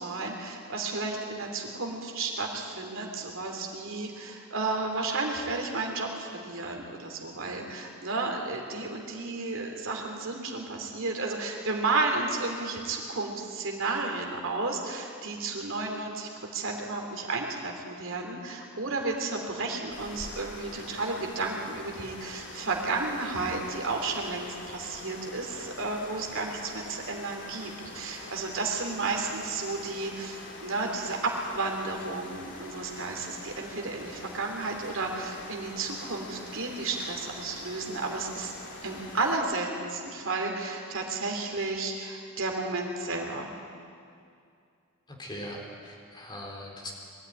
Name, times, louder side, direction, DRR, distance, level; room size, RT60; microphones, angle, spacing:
voice 1, 0.0-38.5 38.8-43.5, right 3 dB, 60° right, 2 dB, 3.2 m, -32 dB
sound 1, 19.9-39.4, left 2 dB, 55° left, 2.8 m, -44 dB
voice 2, 45.1-46.9, left 1 dB, 20° left, -1 dB, 3.7 m, -40 dB
22.5 x 13.5 x 9.8 m, 2.4 s
head